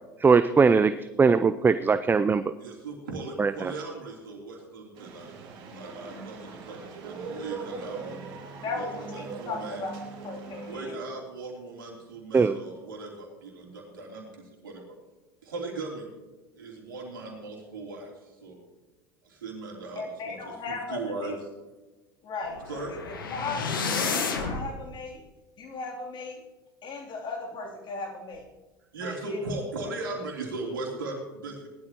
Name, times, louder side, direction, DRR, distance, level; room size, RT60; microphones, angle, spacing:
voice 1, 0.2-0.9 1.2-2.4 3.4-3.5 12.3-12.6, right 5 dB, 20° right, 12 dB, 0.5 m, -20 dB
voice 2, 2.6-5.3 5.7-8.3 8.7-9.9 10.7-14.9 15.4-16.1 16.6-18.6 19.2-21.4 22.7-22.9 28.9-31.7, right 2 dB, 85° right, 0 dB, 3.3 m, -38 dB
sound 1, 4.9-10.8, right 4 dB, 55° right, 2.7 m, -41 dB
voice 3, 8.6-11.0 20.0-21.4 22.2-22.8 23.3-23.9 24.2-25.2 25.6-26.4 26.8-28.5 29.0-29.4, left 3 dB, 45° left, 0 dB, 3.2 m, -37 dB
sound 2, 22.5-24.7, left 5 dB, 85° left, 1.5 m, -30 dB
19.0 x 12.0 x 3.0 m, 1.2 s
hypercardioid pair, 75°, 11 cm